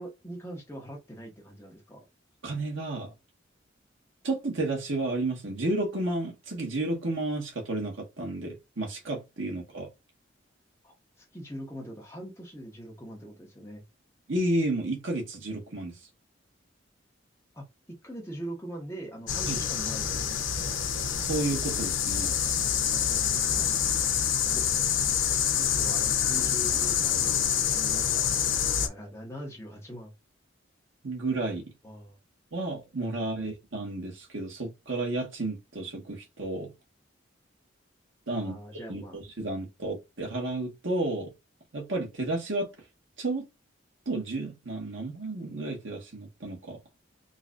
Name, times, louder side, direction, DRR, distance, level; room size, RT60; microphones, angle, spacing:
voice 1, 0.0-2.0 10.8-13.8 17.5-20.7 23.5-23.7 24.5-24.6 25.5-30.1 31.8-32.2 33.3-33.5 38.3-39.2, right 1 dB, 15° left, 1.3 m, -42 dB
voice 2, 2.4-3.1 4.2-9.9 14.3-16.0 19.5-19.6 21.2-22.3 31.0-31.6 32.5-36.7 38.3-38.5 38.9-41.3 41.7-42.7 43.2-43.4 44.0-46.8, right 2 dB, 80° right, 1.6 m, -32 dB
sound 1, 19.3-28.9, left 8 dB, 85° left, 0.8 m, -27 dB
3.9 x 3.2 x 2.5 m
head